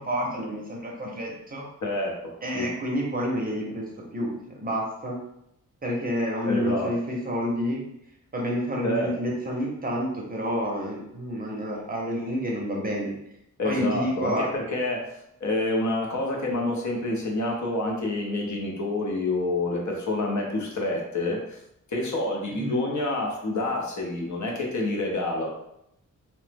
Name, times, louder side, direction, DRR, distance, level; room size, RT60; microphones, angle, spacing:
voice 1, 0.0-1.6 2.4-3.8 4.1-4.3 4.6-5.2 5.8-7.8 8.3-13.1 13.6-14.5 22.5-22.8, equal, 30° right, -2 dB, 0.6 m, -29 dB
voice 2, 1.8-2.7 6.5-6.9 8.8-9.1 13.6-21.6 21.9-25.5, left 2 dB, 60° left, 0 dB, 0.7 m, -28 dB
2.9 x 2.0 x 3.3 m, 0.78 s
wide cardioid pair, 160°, 32 cm